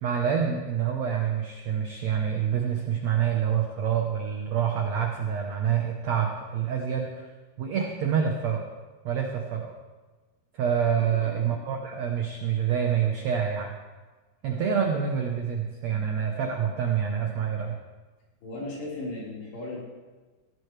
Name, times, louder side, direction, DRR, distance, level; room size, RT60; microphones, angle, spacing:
voice 1, 0.0-7.3 7.6-8.7 9.0-9.7 10.5-13.8 14.4-17.8, right 8 dB, 80° right, 2 dB, 1.5 m, -27 dB
voice 2, 18.4-19.8, left 2 dB, 80° left, -6 dB, 6.6 m, -36 dB
17.5 x 16.0 x 3.3 m, 1.3 s
omnidirectional pair, 4.7 m